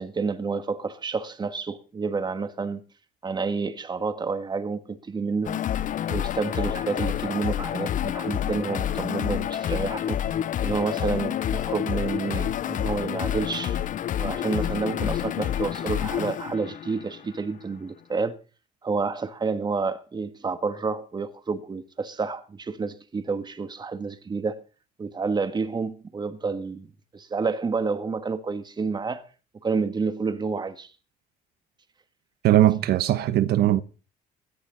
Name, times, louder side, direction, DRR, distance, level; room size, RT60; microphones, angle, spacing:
voice 1, 0.0-2.8 3.2-5.6 6.1-10.2 10.6-13.8 14.2-18.4 18.8-24.6 25.0-29.3 29.6-30.9, right 4 dB, 25° right, 1.7 m, -29 dB
sound 1, 5.4-17.5, left 10 dB, 50° left, 0.7 m, -28 dB
voice 2, 32.4-33.8, right 13 dB, 70° right, 1.1 m, -20 dB
16.5 x 13.0 x 4.0 m
cardioid pair, 110°, 17 cm